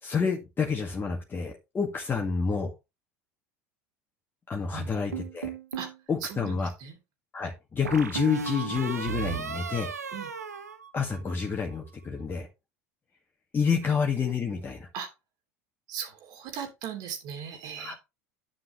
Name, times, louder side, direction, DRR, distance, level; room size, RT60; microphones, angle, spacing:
voice 1, 0.0-2.7 4.5-5.5 6.1-6.7 7.3-9.9 10.9-12.5 13.5-14.9 17.8-17.9, left 5 dB, 25° left, 0 dB, 1.9 m, -29 dB
sound 1, 5.1-6.0 7.8-11.5, right 6 dB, 90° right, 1.0 m, -35 dB
voice 2, 6.2-7.0 10.1-10.3 13.8-13.9 14.9-15.1 15.9-17.9, right 7 dB, 55° right, 5 dB, 2.7 m, -38 dB
9.8 x 7.7 x 3.1 m, 0.24 s
hypercardioid pair, 75°, 8 cm